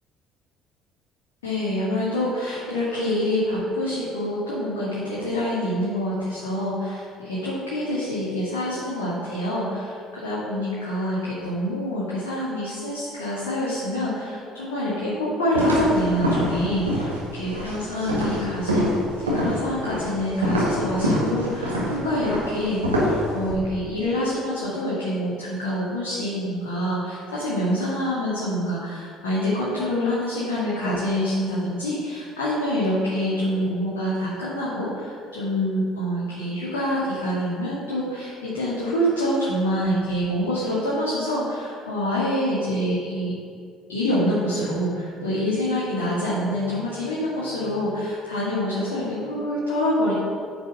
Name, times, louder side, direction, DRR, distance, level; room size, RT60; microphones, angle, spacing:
voice 1, 1.4-17.1 17.3-18.9 19.2-43.3 43.9-50.1, equal, 75° left, -8 dB, 2.1 m, -26 dB
sound 1, 15.5-23.5, equal, 85° right, 1.7 m, -25 dB
9.0 x 6.1 x 6.5 m, 2.2 s
figure-of-eight pair, 55°, 0 cm